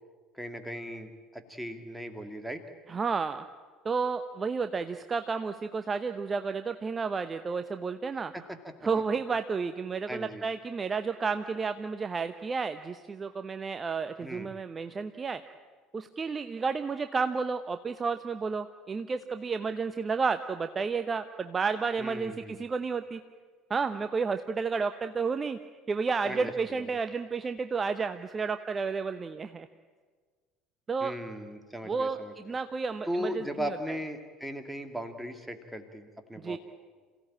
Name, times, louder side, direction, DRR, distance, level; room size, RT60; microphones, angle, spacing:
voice 1, 0.3-2.6 8.3-8.7 10.1-10.4 14.2-14.5 22.0-22.7 26.2-26.9 31.0-32.3 33.0-36.6, equal, 5° right, 6 dB, 2.5 m, -38 dB
voice 2, 2.9-3.4 3.8-8.3 8.8-15.4 15.9-23.2 23.7-25.6 25.9-29.7 30.9-31.1 31.8-32.2 32.5-33.8 36.4-36.6, right 5 dB, 25° right, 10 dB, 0.8 m, -31 dB
27.0 x 16.5 x 8.8 m, 1.5 s
figure-of-eight pair, 65°, 0 cm